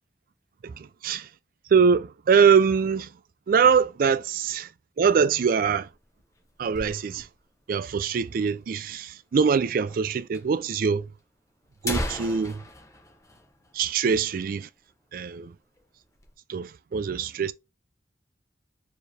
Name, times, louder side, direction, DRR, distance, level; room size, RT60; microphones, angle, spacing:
voice 1, 0.6-1.3 1.7-3.1 3.5-4.7 5.0-5.9 6.6-7.3 7.7-11.0 11.8-12.6 13.7-14.7 15.1-15.5 16.5-17.5, right 6 dB, 55° right, 0.3 m, -23 dB
sound 1, 5.7-7.5 7.8-7.9 8.1-8.2 8.9-9.0 9.9-10.0 10.3-10.4 11.2-11.3 11.6-14.2 14.5-14.7 15.1-15.3 15.8-16.3, left 1 dB, 20° left, 0.9 m, -36 dB
4.4 x 3.0 x 3.3 m
head